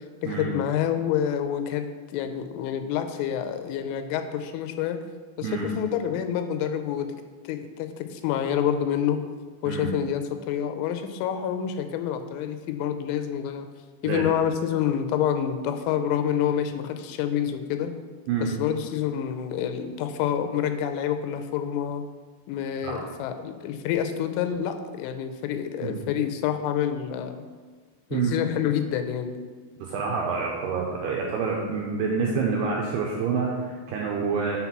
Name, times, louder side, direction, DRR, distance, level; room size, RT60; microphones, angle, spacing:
voice 1, 0.2-5.0 5.4-7.1 7.4-9.2 9.6-13.7 14.0-17.9 18.4-22.0 22.5-27.4 28.1-29.4, left 9 dB, 90° left, 8 dB, 3.1 m, -28 dB
voice 2, 14.0-14.4 18.3-18.5 22.8-23.1 25.8-26.0 28.1-28.3 29.8-34.6, right 5 dB, 85° right, -1 dB, 2.3 m, -27 dB
7.0 x 4.1 x 5.8 m, 1.5 s
omnidirectional pair, 5.5 m